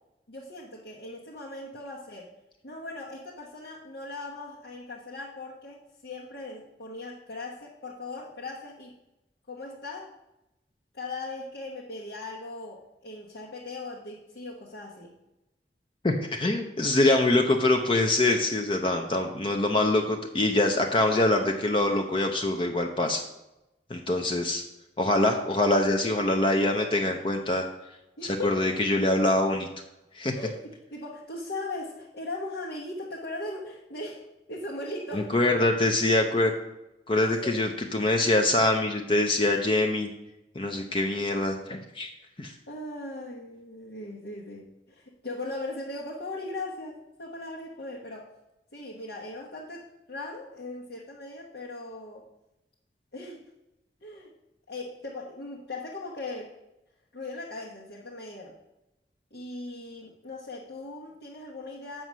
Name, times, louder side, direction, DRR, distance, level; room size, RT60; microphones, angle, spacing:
voice 1, 0.3-2.3 2.6-9.0 9.5-10.1 10.9-15.1 28.2-28.6 30.3-34.2 34.5-35.3 37.2-37.6 42.7-48.3 48.7-52.3 53.1-53.4 54.0-54.3 54.7-56.5 57.1-58.5 59.3-62.0, left 2 dB, 70° left, -4 dB, 1.1 m, -39 dB
voice 2, 16.0-23.2 23.9-24.6 25.0-27.6 28.2-29.7 30.1-30.3 35.1-36.5 37.1-40.1 40.5-42.1 42.4-42.5, left 2 dB, 30° left, 3 dB, 0.6 m, -24 dB
7.6 x 5.5 x 6.1 m, 0.92 s
head